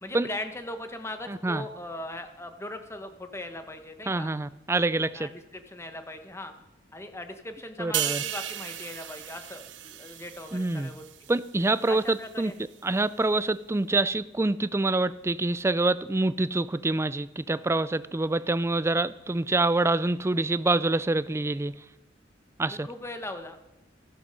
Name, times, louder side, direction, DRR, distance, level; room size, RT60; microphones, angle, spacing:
voice 1, 0.0-4.3 5.1-6.5 6.9-11.0 11.9-12.6 22.7-23.6, left 1 dB, 15° left, 7 dB, 1.1 m, -39 dB
voice 2, 1.3-1.6 4.1-5.3 7.8-8.2 10.5-10.9 11.3-12.5 12.8-21.7 22.6-22.9, right 2 dB, 15° right, 16 dB, 0.4 m, -26 dB
sound 1, 7.9-11.5 11.8-12.1, right 12 dB, 90° right, 0.7 m, -35 dB
15.0 x 11.5 x 5.3 m, 0.93 s
head